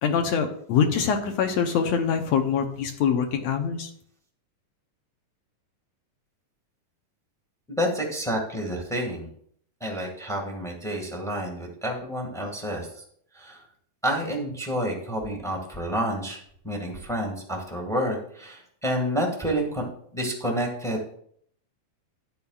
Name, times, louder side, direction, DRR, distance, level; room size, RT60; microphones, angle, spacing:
voice 1, 0.0-3.9, left 7 dB, 70° left, 5 dB, 1.7 m, -24 dB
voice 2, 7.7-9.3 9.8-12.9 13.3-13.6 14.0-16.4 16.6-19.8 20.1-21.0, equal, 5° left, 0 dB, 0.4 m, -29 dB
12.5 x 9.5 x 2.4 m, 0.64 s
omnidirectional pair, 3.7 m